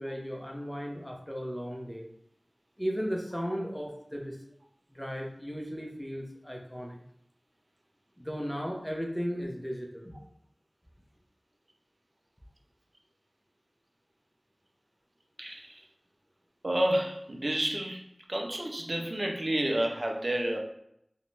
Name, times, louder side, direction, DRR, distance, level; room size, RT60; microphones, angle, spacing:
voice 1, 0.0-2.1 2.8-4.4 4.9-7.0 8.2-10.1, equal, 5° left, 0.6 m, -35 dB
voice 2, 16.6-18.0 18.3-20.6, right 1 dB, 60° right, 0.4 m, -29 dB
2.5 x 2.1 x 3.0 m
wide cardioid pair, 40°, 0 cm